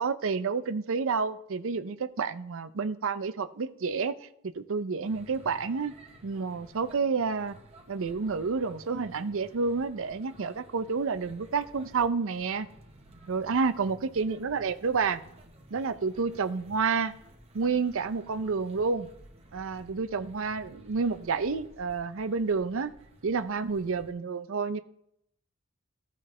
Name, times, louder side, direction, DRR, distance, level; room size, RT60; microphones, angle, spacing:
voice 1, 0.0-4.1 4.4-5.9 6.2-7.6 7.9-12.7 13.3-15.2 15.7-17.1 17.5-19.1 19.5-22.9 23.2-24.8, right 5 dB, 65° right, 12 dB, 0.5 m, -29 dB
sound 1, 5.0-24.1, right 1 dB, 30° right, 1.1 m, -54 dB
14.5 x 5.2 x 3.3 m, 0.74 s
head